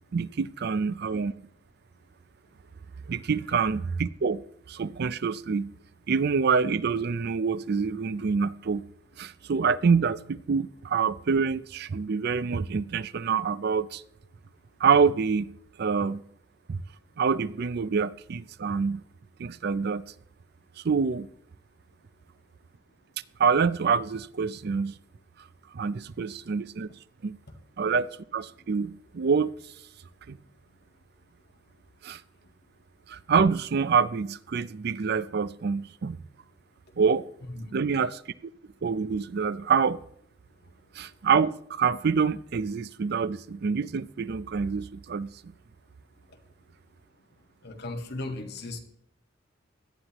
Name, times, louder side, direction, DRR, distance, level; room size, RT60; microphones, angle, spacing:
voice 1, 0.1-1.3 3.1-5.7 6.1-8.8 9.2-14.0 14.8-15.5 15.8-16.2 16.7-16.8 17.2-19.0 19.4-20.0 20.8-21.3 23.4-25.0 25.7-26.9 27.2-27.4 27.8-29.5 30.3-30.4 32.0-32.2 33.1-36.2 37.0-37.3 37.7-38.5 38.8-40.0 40.9-45.3, right 5 dB, 55° right, 0.4 m, -26 dB
voice 2, 47.6-48.8, left 2 dB, 60° left, 1.7 m, -36 dB
17.0 x 11.5 x 3.0 m
head